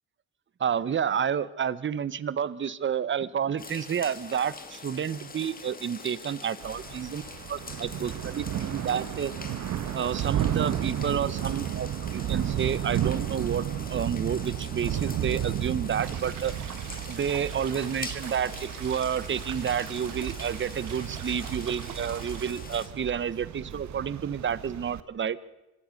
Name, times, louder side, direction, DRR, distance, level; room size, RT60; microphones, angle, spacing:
voice 1, 0.6-7.2 7.5-9.3 9.9-16.5 17.1-25.4, right 8 dB, 40° right, 18 dB, 1.0 m, -30 dB
sound 1, 3.6-22.9, left 4 dB, 30° left, 2.7 m, -44 dB
Thunder / Rain, 6.6-25.0, right 10 dB, 70° right, 1.3 m, -33 dB
sound 2, 16.0-22.5, right 12 dB, 85° right, 1.4 m, -42 dB
25.5 x 17.5 x 6.6 m, 0.98 s
cardioid pair, 90°, 30 cm